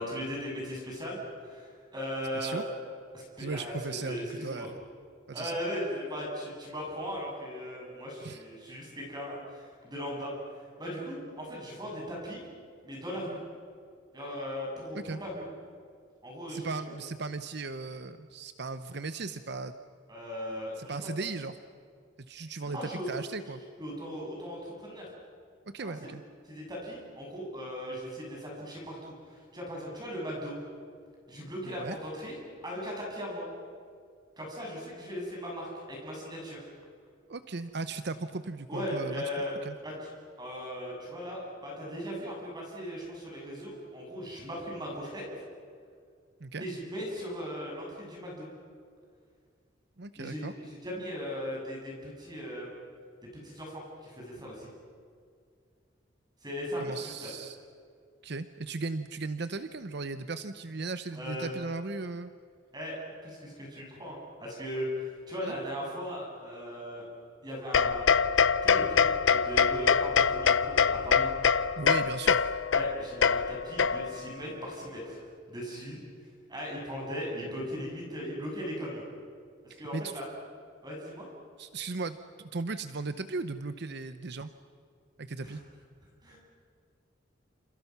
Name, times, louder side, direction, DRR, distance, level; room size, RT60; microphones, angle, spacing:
voice 1, 0.0-2.6 3.1-4.7 5.3-10.3 10.8-12.4 12.8-13.4 14.1-15.4 16.2-16.8 20.1-21.0 22.6-23.1 23.8-25.1 25.8-26.1 26.5-30.6 31.3-33.4 34.4-36.6 38.7-39.5 39.8-40.1 40.4-45.2 46.6-48.5 50.2-52.7 53.4-54.7 56.4-57.3 61.1-61.5 62.7-67.1 67.4-68.1 68.6-69.0 69.3-71.3 72.7-75.2 75.5-76.0 76.5-79.0 79.6-80.3 80.8-81.3 85.4-85.6 86.2-86.4, equal, 20° right, -2 dB, 7.2 m, -38 dB
voice 2, 3.4-4.8 5.3-5.6 8.2-8.4 14.9-15.2 16.5-19.7 20.8-21.5 22.3-23.6 25.7-26.2 31.6-32.0 37.3-39.2 39.6-39.7 46.4-46.6 50.0-50.5 56.8-57.6 58.2-62.3 65.4-65.5 71.8-72.4 79.7-80.1 81.6-84.5 85.2-85.6, right 3 dB, 60° right, 11 dB, 0.8 m, -37 dB
sound 1, 67.7-74.3, left 6 dB, 85° left, 0.7 m, -25 dB
28.5 x 28.0 x 6.0 m, 2.2 s
head